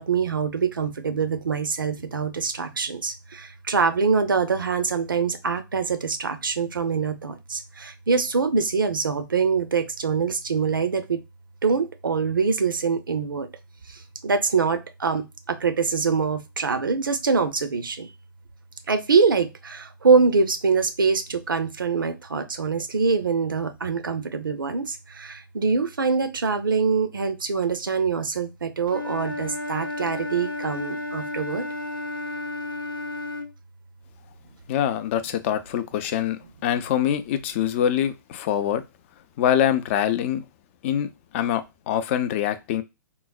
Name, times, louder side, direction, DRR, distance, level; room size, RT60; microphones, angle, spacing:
voice 1, 0.0-11.2 11.6-13.5 13.9-18.1 18.9-31.6, right 5 dB, 75° right, 9 dB, 0.6 m, -24 dB
Wind instrument woodwind instrument, 28.9-33.5, left 2 dB, 80° left, 0.6 m, -32 dB
voice 2, 34.7-38.8 39.4-40.4 40.8-41.1 41.3-42.8, left 10 dB, 35° left, 12 dB, 0.4 m, -24 dB
3.8 x 2.0 x 2.3 m, 0.24 s
figure-of-eight pair, 115°, 11 cm